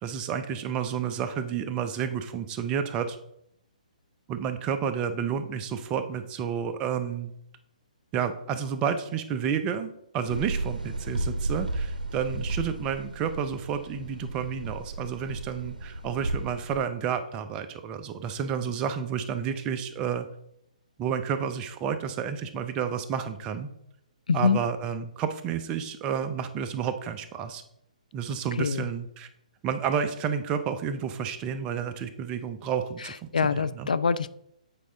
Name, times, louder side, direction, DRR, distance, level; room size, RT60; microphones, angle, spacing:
voice 1, 0.0-3.2 4.3-7.3 8.1-20.3 21.0-23.7 24.3-27.6 28.1-29.3 29.6-33.9, right 7 dB, 25° right, 9 dB, 0.6 m, -30 dB
sound 1, 10.3-16.8, right 2 dB, 85° right, 0.7 m, -33 dB
voice 2, 24.3-24.6 28.6-28.9 33.0-34.3, left 5 dB, 75° left, 15 dB, 0.4 m, -25 dB
8.3 x 4.7 x 3.8 m, 0.75 s
figure-of-eight pair, 135°, 4 cm